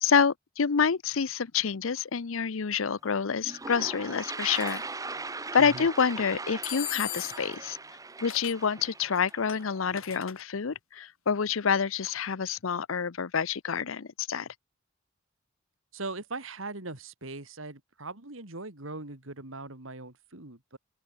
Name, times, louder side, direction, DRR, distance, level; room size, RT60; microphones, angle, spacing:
voice 1, 0.0-4.8 5.5-7.8 8.2-14.5, left 6 dB, 70° left, 0.7 m, -27 dB
Toilet flush, 3.0-3.1 3.4-10.2, right 3 dB, 15° right, 1.0 m, -40 dB
sound 1, 4.5-4.8 6.6-7.6 8.3-8.6 9.1-10.4, left 14 dB, 90° left, 2.8 m, -38 dB
voice 2, 15.9-20.8, right 3 dB, 70° right, 3.0 m, -40 dB
open air
head